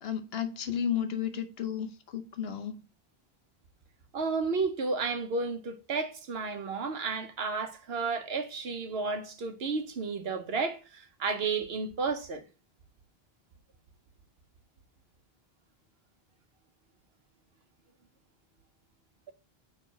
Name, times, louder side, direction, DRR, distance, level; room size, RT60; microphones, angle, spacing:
voice 1, 0.0-2.8, left 8 dB, 75° left, 1.0 m, -33 dB
voice 2, 4.1-12.4, right 4 dB, 75° right, 1.1 m, -32 dB
6.5 x 3.7 x 4.6 m
omnidirectional pair, 1.0 m